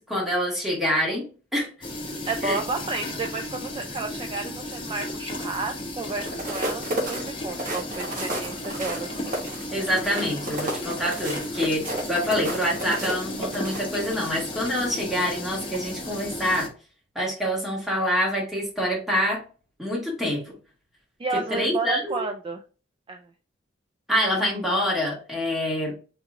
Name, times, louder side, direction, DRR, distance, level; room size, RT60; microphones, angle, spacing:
voice 1, 0.0-1.7 2.4-2.6 9.7-16.7 17.1-19.4 19.8-20.5 21.3-22.2 24.1-25.9, equal, ahead, -3 dB, 1.4 m, -26 dB
sound 1, 1.8-16.7, left 1 dB, 25° left, 0.8 m, -34 dB
voice 2, 2.3-9.3 21.2-22.6 23.1-23.3, right 3 dB, 30° right, 4 dB, 0.3 m, -32 dB
sound 2, 6.2-14.4 14.8-15.0, right 1 dB, 45° right, 1.1 m, -32 dB
3.6 x 3.1 x 2.4 m, 0.36 s
head